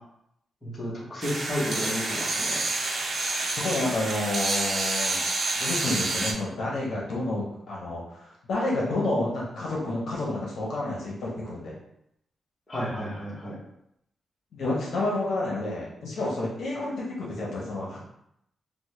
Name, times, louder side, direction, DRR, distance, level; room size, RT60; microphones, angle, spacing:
voice 1, 0.6-2.6 12.7-13.5, equal, 20° left, -7 dB, 0.9 m, -32 dB
sound 1, 1.2-6.3, right 3 dB, 45° right, 0.4 m, -28 dB
voice 2, 3.5-5.2 5.6-11.8 14.5-18.0, left 2 dB, 70° left, -4 dB, 0.7 m, -30 dB
3.1 x 2.1 x 3.1 m, 0.78 s
wide cardioid pair, 165°, 0 cm